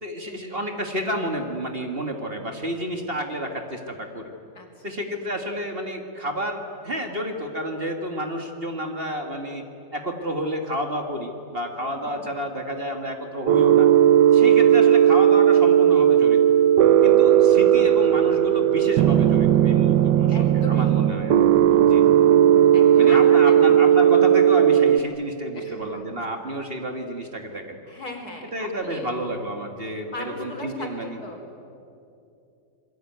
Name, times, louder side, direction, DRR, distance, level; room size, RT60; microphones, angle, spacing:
voice 1, 0.0-4.3 4.8-9.7 9.9-13.9 14.3-16.4 17.0-21.4 21.8-22.1 23.0-27.8 28.5-31.2, equal, 35° right, 4 dB, 2.0 m, -30 dB
voice 2, 11.8-12.3 17.4-17.5 20.3-20.9 21.6-22.0 22.7-23.9 25.5-26.1 27.9-29.2 30.1-31.4, left 2 dB, 60° left, 2 dB, 4.3 m, -38 dB
sound 1, 13.5-25.0, right 10 dB, 75° right, 1.4 m, -16 dB
28.0 x 22.0 x 9.4 m, 2.6 s
omnidirectional pair, 1.9 m